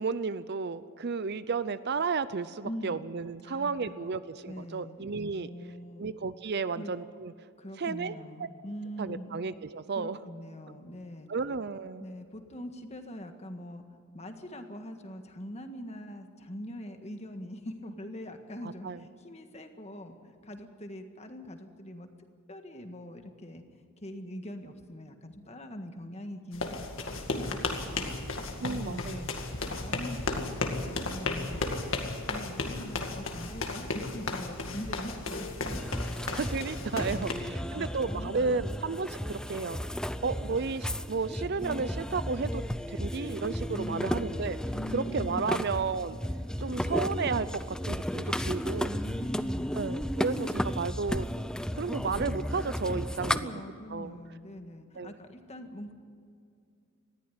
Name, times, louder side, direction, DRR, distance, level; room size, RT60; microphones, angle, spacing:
voice 1, 0.0-5.5 6.0-7.3 7.8-8.1 8.4-8.5 9.0-10.2 11.3-12.1 18.6-19.0 28.6-29.4 36.3-39.9 40.2-42.6 42.9-44.6 44.9-46.2 46.6-49.0 49.7-51.3 51.7-53.6 53.9-54.2 55.0-55.1, right 4 dB, 50° right, 15 dB, 0.6 m, -33 dB
voice 2, 2.6-3.1 3.4-6.1 6.7-6.9 7.6-9.4 9.9-11.3 12.0-13.8 14.1-20.2 20.4-22.1 22.5-23.6 24.0-26.8 27.2-27.6 27.8-28.2 28.6-29.3 29.6-35.8 36.9-38.7 43.7-44.2 44.7-45.7 48.8-49.8 53.2-55.9, equal, 30° left, 6 dB, 1.6 m, -43 dB
sound 1, 26.5-37.3, left 3 dB, 60° left, 2.2 m, -34 dB
sound 2, 35.7-53.4, equal, 5° left, 0.5 m, -34 dB
20.0 x 14.5 x 10.0 m, 2.4 s
head